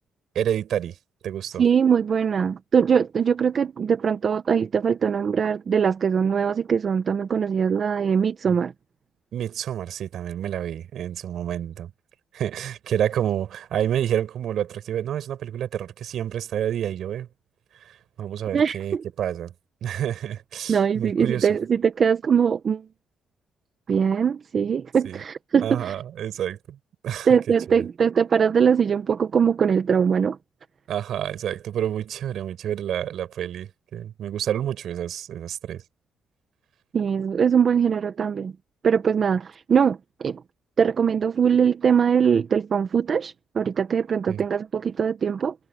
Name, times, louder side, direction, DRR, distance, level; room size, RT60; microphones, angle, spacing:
voice 1, 0.3-1.0 1.2-1.6 8.5-8.6 9.3-11.9 12.3-17.3 17.8-19.5 19.8-21.5 25.0-25.2 25.6-26.8 27.0-27.4 27.7-27.8 30.9-35.8 44.3-44.4, right 10 dB, 70° right, 7.7 m, -29 dB
voice 2, 1.6-8.7 18.5-19.0 20.7-22.8 23.9-25.9 27.3-30.4 36.9-38.5 38.8-40.4 40.8-45.5, right 7 dB, 50° right, 1.1 m, -22 dB
cardioid pair, 90°, 0 cm